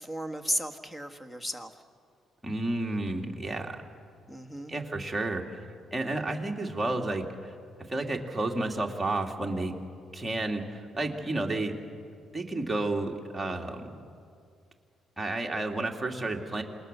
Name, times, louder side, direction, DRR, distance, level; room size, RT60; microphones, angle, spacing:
voice 1, 0.0-1.7 4.3-4.7, equal, 10° left, 7 dB, 1.6 m, -34 dB
voice 2, 2.4-3.8 4.7-5.6 5.9-7.5 7.9-9.7 10.1-11.8 12.3-13.9 15.2-16.6, right 2 dB, 10° right, 1 dB, 2.6 m, -31 dB
27.5 x 20.0 x 6.8 m, 2.3 s
cardioid pair, 90°, 0 cm